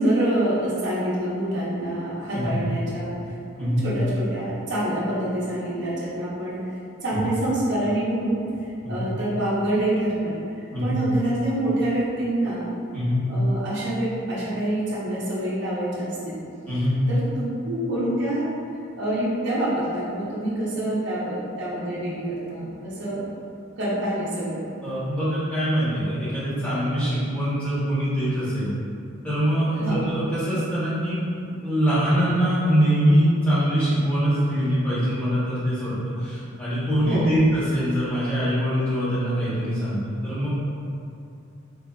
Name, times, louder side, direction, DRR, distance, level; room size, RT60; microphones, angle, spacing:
voice 1, 0.0-3.1 3.8-6.6 7.0-8.4 8.9-12.7 13.3-16.4 17.1-18.5 19.0-23.2 23.8-24.6 29.8-30.0 37.1-37.3, right 1 dB, 55° right, -9 dB, 0.7 m, -26 dB
voice 2, 12.9-13.2 16.7-16.9 24.8-28.7 29.2-40.5, equal, 5° left, -13 dB, 1.0 m, -23 dB
3.7 x 2.6 x 2.3 m, 2.5 s
head